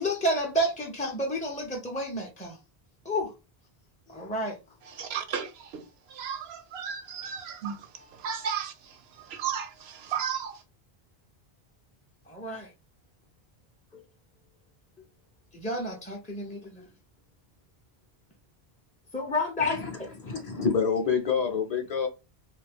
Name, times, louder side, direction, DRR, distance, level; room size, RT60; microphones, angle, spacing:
voice 1, 0.0-2.6 3.0-3.3 4.1-4.6 12.3-12.7 13.9-14.0 15.5-16.9 19.1-19.8 20.3-20.4, equal, 10° left, 0.3 m, -30 dB
voice 2, 4.8-10.6, right 7 dB, 85° right, 0.8 m, -35 dB
voice 3, 19.6-20.0 20.2-22.1, left 6 dB, 45° left, 0.6 m, -27 dB
2.6 x 2.4 x 3.4 m
omnidirectional pair, 1.0 m